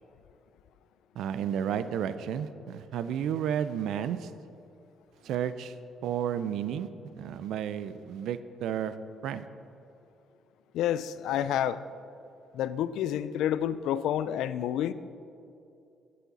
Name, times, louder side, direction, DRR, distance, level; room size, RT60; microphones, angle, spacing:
voice 1, 1.2-4.3 5.2-5.8 6.0-9.0 9.2-9.5, right 9 dB, 80° right, 13 dB, 0.4 m, -32 dB
voice 2, 10.7-11.8 12.5-14.9, left 10 dB, 85° left, 14 dB, 0.3 m, -29 dB
12.0 x 8.5 x 4.1 m, 2.6 s
cardioid pair, 90°, 0 cm